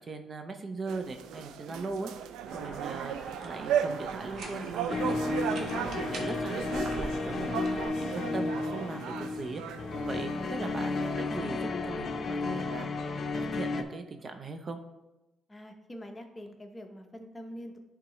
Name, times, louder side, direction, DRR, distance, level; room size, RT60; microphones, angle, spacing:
voice 1, 0.1-2.1 2.5-9.6 10.1-13.1 13.3-14.8, right 3 dB, 40° right, 6 dB, 0.6 m, -39 dB
sound 1, 0.9-11.1, right 9 dB, 90° right, 0.3 m, -37 dB
sound 2, 2.5-7.9, right 2 dB, 70° right, 1.0 m, -42 dB
sound 3, 4.9-13.8, left 3 dB, 50° left, 0.6 m, -33 dB
voice 2, 15.5-17.8, equal, 20° left, 4 dB, 0.8 m, -45 dB
10.5 x 3.6 x 3.1 m, 1.0 s
cardioid pair, 90°, 0 cm